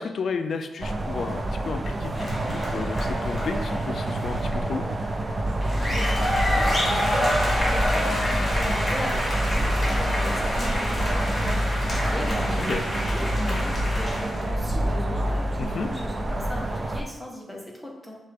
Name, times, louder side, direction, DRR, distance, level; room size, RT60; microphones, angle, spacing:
voice 1, 0.0-4.8 12.7-12.8 15.6-15.9, left 5 dB, 60° left, 8 dB, 0.4 m, -32 dB
sound 1, 0.8-17.0, right 2 dB, 30° right, 0.4 m, -29 dB
sound 2, 2.1-4.6 5.6-14.5, equal, 25° left, 1.5 m, -29 dB
sound 3, 5.4-15.6, left 1 dB, 75° right, 1.0 m, -29 dB
voice 2, 5.8-18.2, equal, ahead, -2 dB, 0.9 m, -37 dB
6.5 x 2.4 x 3.4 m, 1.0 s
wide cardioid pair, 120°, 0 cm